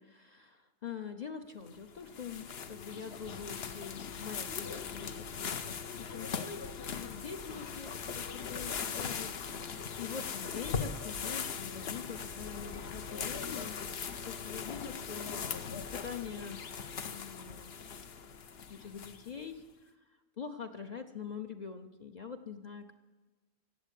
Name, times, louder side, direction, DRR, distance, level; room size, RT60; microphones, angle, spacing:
voice 1, 0.0-13.7 14.0-16.6 17.0-17.8 18.7-19.9 20.4-22.9, left 6 dB, 45° left, 4 dB, 0.8 m, -45 dB
sound 1, 1.7-19.4, left 6 dB, 65° left, 1.0 m, -40 dB
15.0 x 8.4 x 8.3 m, 1.3 s
omnidirectional pair, 1.1 m